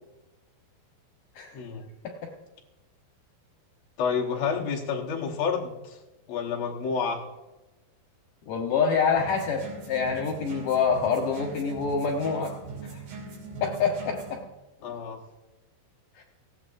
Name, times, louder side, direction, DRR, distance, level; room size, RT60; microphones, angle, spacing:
voice 1, 1.5-1.8 4.0-6.0 6.3-7.2 14.8-15.2, left 6 dB, 85° left, -1 dB, 1.4 m, -29 dB
voice 2, 8.5-12.5 12.9-13.0 13.6-14.4 16.2-16.3, left 6 dB, 70° left, 2 dB, 2.2 m, -26 dB
sound 1, 9.2-14.4, right 4 dB, 85° right, 5.4 m, -41 dB
19.5 x 16.0 x 2.6 m, 1.1 s
omnidirectional pair, 4.9 m